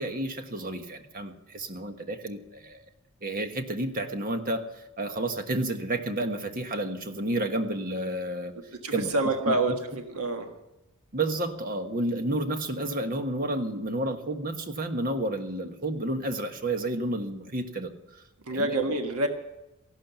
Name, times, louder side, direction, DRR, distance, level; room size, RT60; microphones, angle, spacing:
voice 1, 0.0-2.8 3.2-8.5 8.9-9.1 9.5-9.8 11.1-18.2 18.5-18.8, right 1 dB, 40° right, 7 dB, 1.3 m, -31 dB
voice 2, 8.8-10.5 18.5-19.3, right 2 dB, 90° right, 5 dB, 1.5 m, -27 dB
15.5 x 12.0 x 6.9 m, 0.93 s
head